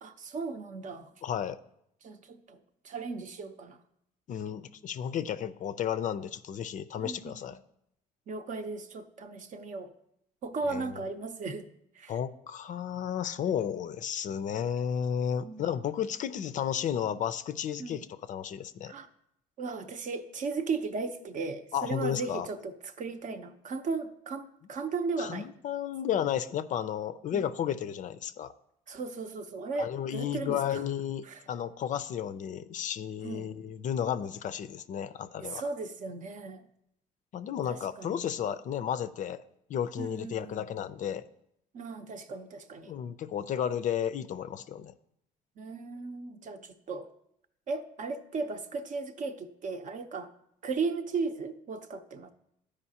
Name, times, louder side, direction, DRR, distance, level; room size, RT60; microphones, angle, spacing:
voice 1, 0.0-1.1 2.0-2.6 2.8-3.8 7.0-7.3 8.3-9.9 10.4-11.7 11.9-12.1 15.4-15.6 17.8-18.0 18.9-19.1 19.6-25.5 27.3-27.4 28.9-30.8 31.2-31.4 33.2-33.5 35.4-36.6 37.7-38.2 40.0-40.7 41.7-43.0 45.6-47.1 47.7-50.3 50.6-52.3, right 4 dB, 50° right, 8 dB, 0.7 m, -36 dB
voice 2, 1.2-1.6 4.3-7.6 10.7-10.9 12.1-18.9 21.7-22.5 25.2-28.5 29.8-35.6 37.3-39.4 39.7-41.2 42.8-44.9, left 9 dB, 50° left, 12 dB, 0.4 m, -33 dB
13.0 x 5.0 x 2.8 m, 0.76 s
cardioid pair, 110°, 17 cm